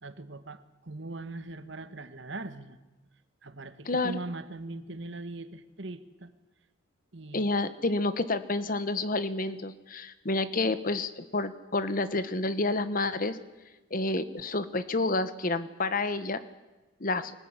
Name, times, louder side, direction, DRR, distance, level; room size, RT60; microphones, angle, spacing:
voice 1, 0.0-2.8 3.4-6.3 7.1-7.4, right 2 dB, 60° right, 11 dB, 1.5 m, -40 dB
voice 2, 3.8-4.2 7.3-13.4 13.9-16.4 17.0-17.3, left 2 dB, 45° left, 13 dB, 1.3 m, -29 dB
23.5 x 19.5 x 9.9 m, 1.1 s
head